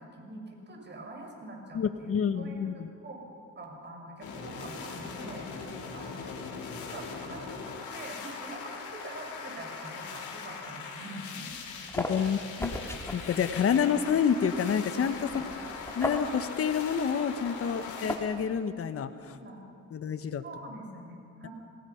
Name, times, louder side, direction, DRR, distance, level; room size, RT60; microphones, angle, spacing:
voice 1, 0.0-3.2 3.6-5.5 5.9-6.3 6.6-11.9 12.2-12.4 15.2-15.4 17.7-17.9 19.3-19.6 20.4-21.5, right 1 dB, 35° right, 1 dB, 6.4 m, -45 dB
voice 2, 1.7-2.9 12.0-12.7 13.1-15.4 15.9-19.4 19.9-20.4, left 7 dB, 50° left, 10 dB, 1.2 m, -28 dB
sound 1, 4.2-18.2, left 5 dB, 75° left, 4.0 m, -41 dB
sound 2, 11.5-18.6, left 1 dB, 10° left, 2.6 m, -39 dB
28.5 x 18.5 x 5.9 m, 2.7 s
cardioid pair, 90°, 30 cm